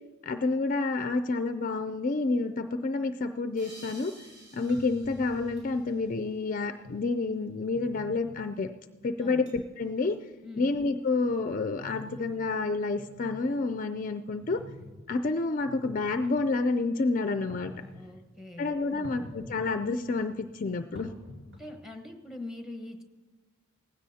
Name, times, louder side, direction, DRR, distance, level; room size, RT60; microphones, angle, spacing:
voice 1, 0.2-4.1 4.5-8.7 9.0-10.2 10.6-14.6 15.1-17.7 18.6-21.1, left 3 dB, 40° left, 8 dB, 0.4 m, -29 dB
sound 1, 3.6-6.6, right 1 dB, 35° right, 4.0 m, -53 dB
sound 2, 4.7-5.9 6.8-6.9 7.7-8.4 9.0-9.1 9.5-9.6 9.9-10.1 10.7-12.4 12.8-13.5 14.4-14.9 15.5-16.3 17.3-18.1 19.0-19.6 19.9-21.7, left 2 dB, 60° right, 4.3 m, -48 dB
voice 2, 17.9-19.4 20.9-21.1 21.6-23.0, left 2 dB, ahead, 4 dB, 1.1 m, -43 dB
18.5 x 16.0 x 2.8 m, 1.4 s
head